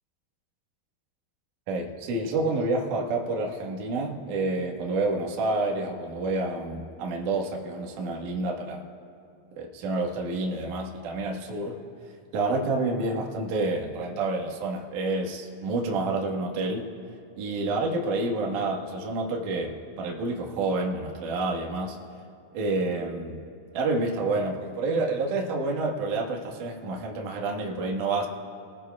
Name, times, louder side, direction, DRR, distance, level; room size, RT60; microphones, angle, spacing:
voice 1, 1.7-8.8 9.6-11.8 12.3-16.9 17.4-22.0 22.5-23.4 23.7-28.3, right 2 dB, 75° right, -1 dB, 1.9 m, -28 dB
28.0 x 19.0 x 2.3 m, 2.3 s
omnidirectional pair, 5.9 m